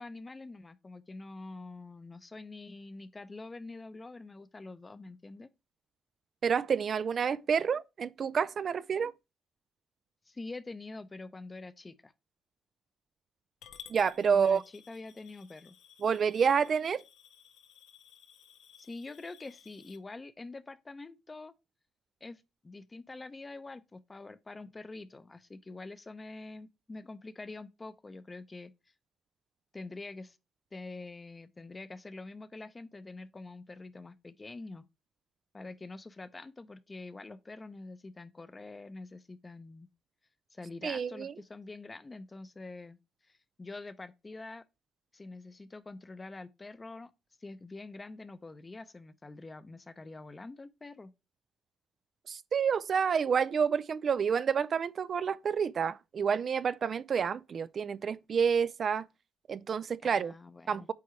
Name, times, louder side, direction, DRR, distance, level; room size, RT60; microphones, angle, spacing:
voice 1, 0.0-5.5 10.3-12.1 14.3-15.8 18.8-21.5 22.2-28.7 29.7-30.4 30.7-34.9 35.5-39.9 40.5-43.0 43.2-44.6 45.1-47.1 47.4-51.1 60.0-60.9, left 3 dB, 25° left, 0.7 m, -46 dB
voice 2, 6.4-9.1 13.9-14.6 16.0-17.0 40.8-41.3 52.3-59.0 59.5-60.3 60.7-60.9, right 6 dB, 50° right, 0.4 m, -29 dB
Coin (dropping) / Glass, 13.6-20.0, left 9 dB, 85° left, 0.9 m, -56 dB
8.4 x 4.6 x 3.2 m
cardioid pair, 90°, 0 cm